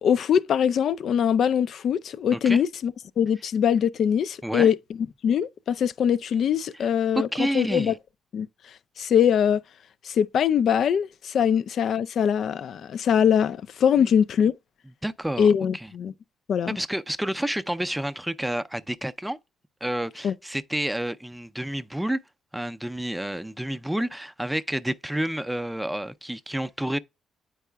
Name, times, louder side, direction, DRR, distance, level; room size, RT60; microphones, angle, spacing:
voice 1, 0.0-4.8 5.2-7.9 8.3-8.5 9.0-9.6 10.0-14.5 15.4-16.1 16.5-16.8 20.2-20.3, left 8 dB, 65° left, 0.4 m, -22 dB
voice 2, 2.3-2.6 4.4-4.7 6.7-6.9 7.2-8.0 14.0-14.1 15.0-15.5 15.7-15.9 16.7-19.4 19.8-22.2 22.5-27.0, right 1 dB, 5° right, 0.5 m, -29 dB
9.0 x 4.7 x 2.3 m
cardioid pair, 90°, 0 cm